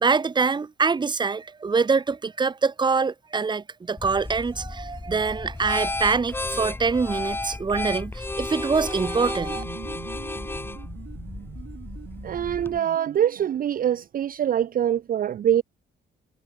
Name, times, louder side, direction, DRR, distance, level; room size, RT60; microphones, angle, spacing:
voice 1, 0.0-9.6, right 4 dB, 25° right, 0.9 m, -24 dB
sound 1, 4.0-12.8, left 2 dB, 10° left, 1.1 m, -33 dB
sound 2, 8.9-13.8, right 11 dB, 75° right, 2.1 m, -44 dB
voice 2, 12.2-15.6, right 10 dB, 50° right, 0.5 m, -24 dB
cardioid pair, 135°, 19 cm